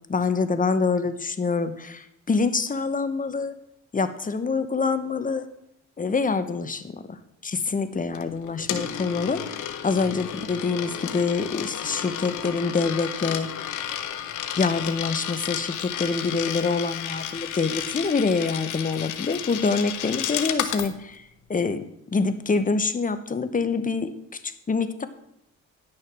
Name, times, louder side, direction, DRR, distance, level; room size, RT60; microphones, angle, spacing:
voice 1, 0.1-3.5 3.9-5.5 6.0-13.7 14.6-25.1, left 4 dB, 25° left, 11 dB, 0.9 m, -26 dB
Coin (dropping), 8.2-20.9, left 10 dB, 80° left, 0.9 m, -32 dB
10.5 x 6.5 x 6.0 m, 0.79 s
cardioid pair, 90°, 30 cm